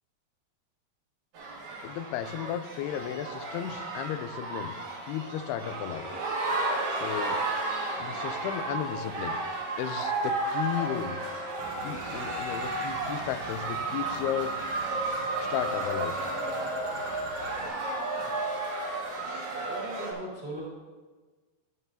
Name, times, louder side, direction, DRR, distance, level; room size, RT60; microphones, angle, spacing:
sound 1, 1.3-20.1, right 2 dB, 55° right, 2.8 m, -33 dB
voice 1, 1.8-4.8 5.0-6.1 6.9-7.4 8.0-9.4 9.8-11.2 11.8-14.6 15.4-16.2, left 10 dB, 90° left, 11 dB, 2.6 m, -34 dB
Bird, 11.6-17.7, equal, 30° right, 1.2 m, -42 dB
voice 2, 19.7-20.7, equal, 15° right, -5 dB, 2.6 m, -39 dB
14.0 x 9.4 x 2.7 m, 1.3 s
omnidirectional pair, 4.5 m